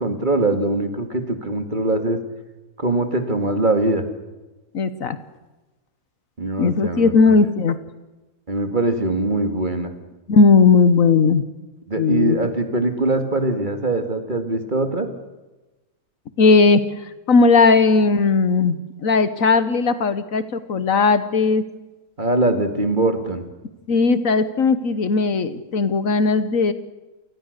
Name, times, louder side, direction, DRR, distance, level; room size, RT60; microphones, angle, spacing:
voice 1, 0.0-2.2 2.8-4.0 6.4-7.3 8.5-9.9 11.9-15.1 22.2-23.4, right 2 dB, 30° right, 6 dB, 2.3 m, -22 dB
voice 2, 4.7-5.2 6.6-7.8 10.3-11.4 12.0-12.4 16.4-21.6 23.9-26.7, left 4 dB, 65° left, 12 dB, 1.5 m, -17 dB
28.5 x 19.5 x 6.7 m, 1.1 s
omnidirectional pair, 1.6 m